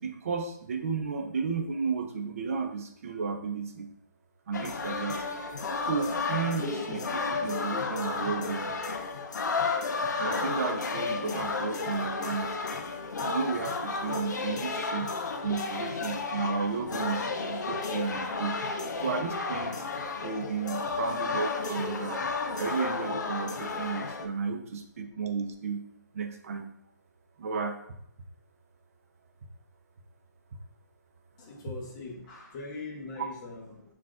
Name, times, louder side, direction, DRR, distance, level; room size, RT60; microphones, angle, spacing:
voice 1, 0.0-3.9 4.5-5.2 5.8-8.7 10.2-12.6 13.2-15.1 15.4-18.6 19.0-19.8 20.2-22.2 22.6-25.8 26.1-26.8 27.4-27.7, right 5 dB, 45° right, 5 dB, 0.6 m, -33 dB
sound 1, 4.5-24.3, left 4 dB, 65° left, 0.5 m, -32 dB
voice 2, 31.4-33.9, left 3 dB, 25° left, -4 dB, 0.8 m, -41 dB
5.7 x 2.4 x 2.4 m, 0.70 s
hypercardioid pair, 155°, 10 cm